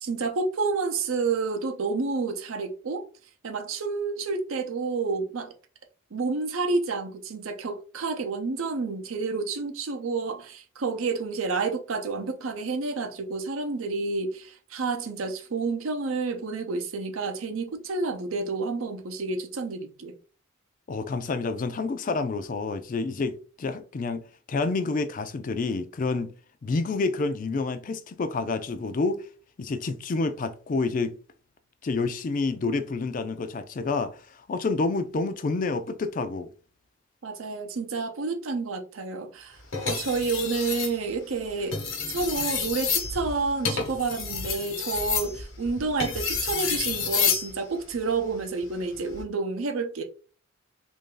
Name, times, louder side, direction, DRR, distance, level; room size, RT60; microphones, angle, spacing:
voice 1, 0.0-3.0 3.4-5.5 6.1-20.2 37.2-39.6 39.8-41.8 42.1-50.0, right 4 dB, 80° right, 0.6 m, -29 dB
voice 2, 20.9-24.2 24.5-26.3 26.6-29.2 29.6-31.2 31.8-34.2 34.5-36.5, left 3 dB, 40° left, 0.3 m, -28 dB
sound 1, 39.7-41.0 41.6-47.5 48.9-49.2, left 6 dB, 70° left, 1.0 m, -29 dB
3.2 x 2.6 x 3.7 m
head